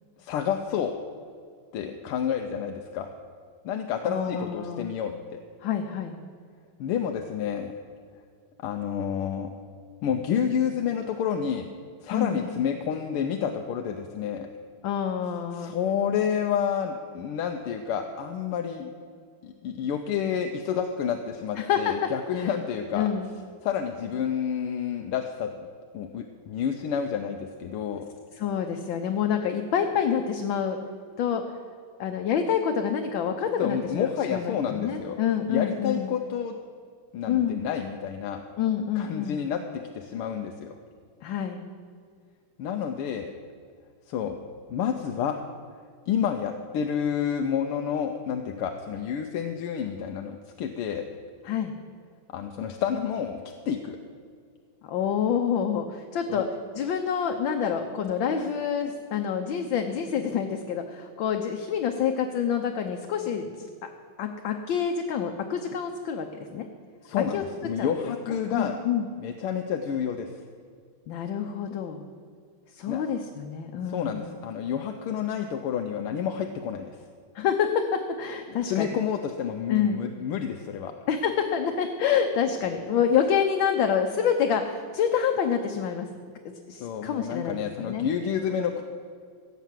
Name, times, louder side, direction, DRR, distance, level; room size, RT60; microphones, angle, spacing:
voice 1, 0.2-0.9 1.7-3.1 3.6-5.4 6.8-7.7 8.6-9.5 10.0-11.7 12.0-14.5 15.5-18.9 19.4-23.1 23.6-25.5 25.9-28.1 33.6-35.2 35.5-36.6 37.1-38.4 38.9-40.8 42.6-43.3 44.1-44.4 44.7-45.4 46.1-51.1 52.3-53.4 53.7-54.0 56.3-56.4 67.0-68.8 69.2-70.3 72.9-73.0 73.9-77.0 78.6-80.9 86.8-88.8, left 8 dB, 85° left, 5 dB, 1.7 m, -29 dB
voice 2, 4.0-4.9 5.6-6.2 12.1-12.5 14.8-15.7 21.6-21.9 22.3-22.5 22.9-23.3 28.4-30.8 31.2-31.4 32.0-36.1 37.3-37.6 38.6-39.4 41.2-41.6 51.4-51.7 54.9-56.5 56.7-63.7 64.2-66.6 67.3-67.4 67.8-67.9 68.3-69.0 71.1-72.0 72.7-74.2 77.3-78.9 79.7-80.0 81.1-86.2 86.4-88.1, left 8 dB, 70° left, 4 dB, 1.5 m, -27 dB
16.5 x 7.2 x 7.5 m, 2.1 s
omnidirectional pair, 2.4 m